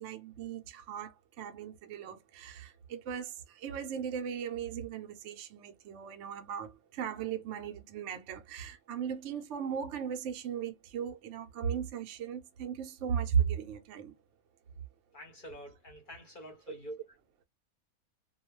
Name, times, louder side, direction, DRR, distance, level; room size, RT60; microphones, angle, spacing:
voice 1, 0.0-14.1 16.7-16.8, right 7 dB, 70° right, 0.8 m, -37 dB
voice 2, 15.1-16.9, right 1 dB, 45° left, 0.8 m, -46 dB
2.3 x 2.2 x 3.0 m
omnidirectional pair, 1.5 m